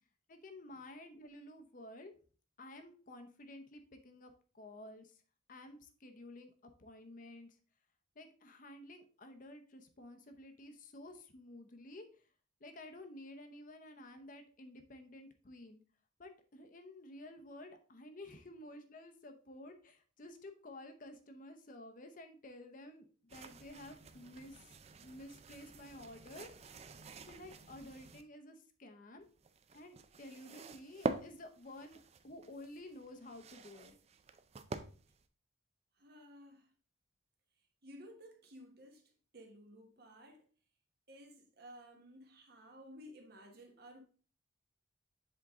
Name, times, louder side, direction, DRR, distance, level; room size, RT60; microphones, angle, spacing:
voice 1, 0.3-2.1 2.6-5.2 5.5-6.5 6.8-7.6 8.2-12.1 12.6-15.8 16.2-24.8 25.0-26.5 27.3-29.3 29.7-34.0, left 1 dB, 45° left, 0.7 m, -52 dB
sound 1, 23.3-28.2 29.2-35.2, right 3 dB, 35° right, 0.4 m, -46 dB
voice 2, 36.0-36.7 37.8-40.4 41.1-44.0, equal, 55° right, 1.3 m, -55 dB
7.6 x 3.7 x 3.6 m
head